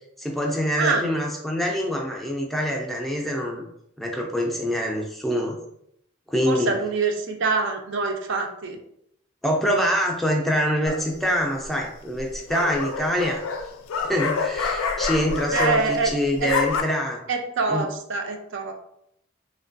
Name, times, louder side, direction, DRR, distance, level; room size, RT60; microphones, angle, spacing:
voice 1, 0.2-3.6 4.0-5.6 6.3-6.7 9.4-13.4 14.0-17.2 17.7-17.9, equal, ahead, -1 dB, 0.4 m, -25 dB
voice 2, 0.8-1.1 6.5-8.8 15.5-16.1 16.4-16.5 17.3-18.7, right 4 dB, 60° right, 3 dB, 0.4 m, -25 dB
sound 1, 10.9-11.3 12.2-16.1 16.3-16.8, left 5 dB, 85° left, 0.4 m, -27 dB
3.1 x 2.2 x 2.5 m, 0.73 s
head